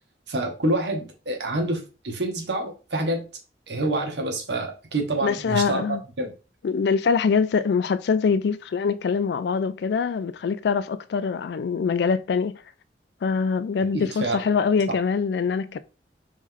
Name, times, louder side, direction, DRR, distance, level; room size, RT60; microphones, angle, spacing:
voice 1, 0.3-3.2 3.7-5.8 6.2-6.3 13.9-14.4 14.9-15.0, right 2 dB, 80° right, 1.1 m, -27 dB
voice 2, 5.2-6.0 6.6-12.6 13.2-15.8, left 5 dB, 70° left, 0.3 m, -24 dB
3.2 x 3.1 x 3.7 m
head